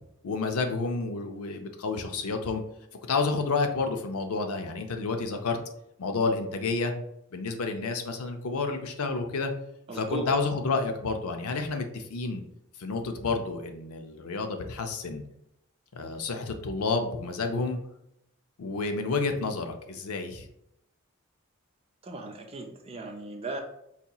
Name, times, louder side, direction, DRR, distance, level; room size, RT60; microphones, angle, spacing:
voice 1, 0.2-2.6 3.1-5.6 6.0-6.9 7.3-9.5 9.9-12.4 12.8-15.2 15.9-17.8 18.6-20.5, left 4 dB, 90° left, 5 dB, 0.5 m, -30 dB
voice 2, 9.9-10.2 22.0-23.6, right 2 dB, 25° right, 3 dB, 0.4 m, -37 dB
4.1 x 2.8 x 2.3 m, 0.79 s
head